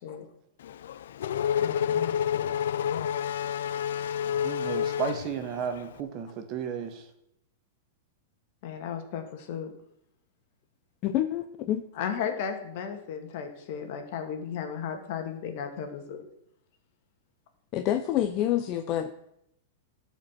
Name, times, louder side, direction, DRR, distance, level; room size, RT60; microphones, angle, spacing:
Race car auto racing / Accelerating revving vroom, 0.6-5.9, left 9 dB, 80° left, 0.5 m, -29 dB
voice 1, 1.6-2.6 8.6-9.7 12.0-16.2, left 7 dB, 55° left, 6 dB, 2.1 m, -35 dB
voice 2, 4.2-7.0, right 7 dB, 35° right, 7 dB, 1.5 m, -34 dB
voice 3, 11.0-11.8 17.7-19.1, left 12 dB, 35° left, 8 dB, 0.6 m, -27 dB
12.0 x 5.2 x 7.4 m, 0.78 s
supercardioid pair, 145°, 0 cm